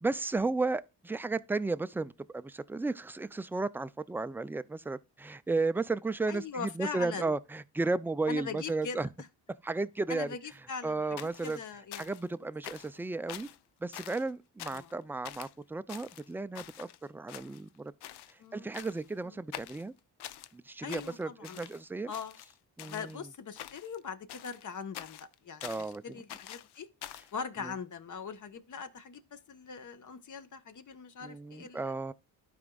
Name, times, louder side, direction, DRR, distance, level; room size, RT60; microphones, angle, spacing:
voice 1, 0.0-9.1 9.6-10.3 10.8-11.6 12.0-13.5 13.8-17.9 18.5-19.9 20.5-22.1 22.8-23.2 25.6-26.0 27.6-27.7 31.2-32.1, right 3 dB, 5° right, 0.3 m, -34 dB
voice 2, 6.3-7.3 8.3-9.1 10.1-12.1 14.7-14.9 18.4-18.7 19.2-19.4 20.8-21.7 22.1-22.4 22.9-26.9 27.3-31.9, left 6 dB, 50° left, 1.1 m, -41 dB
sound 1, 11.2-12.3 12.6-13.0 13.3-13.6 13.9-14.3 14.6-14.9 15.2-15.5 15.9-17.0 17.3-17.8 18.0-18.3 18.7-19.1 19.5-20.5 20.9-21.8 22.1-23.2 23.6-24.0 24.3-26.0 26.3-27.3, left 12 dB, 75° left, 0.6 m, -46 dB
12.0 x 5.0 x 2.3 m
cardioid pair, 75°, 40 cm